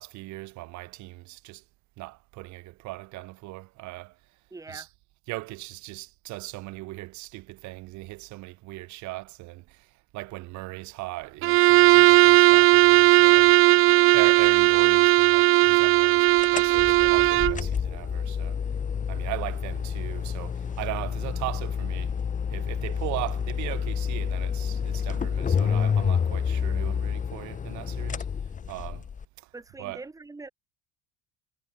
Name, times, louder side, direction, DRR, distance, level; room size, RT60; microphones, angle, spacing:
voice 1, 0.0-1.6 2.0-4.2 4.7-4.9 5.3-13.6 14.1-18.6 19.1-22.1 22.5-28.3 28.7-29.1 29.4-29.5 29.8-30.1, right 21 dB, 70° right, 3.7 m, -38 dB
voice 2, 4.5-4.9 13.5-14.2 29.5-30.5, right 3 dB, 10° right, 3.0 m, -43 dB
Bowed string instrument, 11.4-17.6, right 17 dB, 45° right, 0.5 m, -17 dB
sound 1, 16.4-29.2, left 7 dB, 25° left, 2.3 m, -29 dB
cardioid pair, 145°, 30 cm